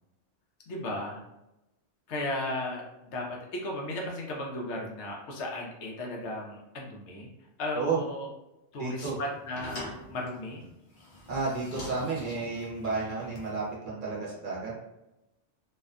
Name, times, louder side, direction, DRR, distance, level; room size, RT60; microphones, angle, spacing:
voice 1, 0.7-1.2 2.1-7.3 7.6-8.3 8.7-10.7, left 1 dB, 75° left, -1 dB, 0.9 m, -35 dB
sound 1, 8.8-13.7, left 1 dB, 55° left, 0.7 m, -45 dB
voice 2, 8.8-9.2 11.3-14.7, right 4 dB, 50° right, -4 dB, 0.8 m, -32 dB
2.6 x 2.1 x 2.4 m, 0.92 s
omnidirectional pair, 1.2 m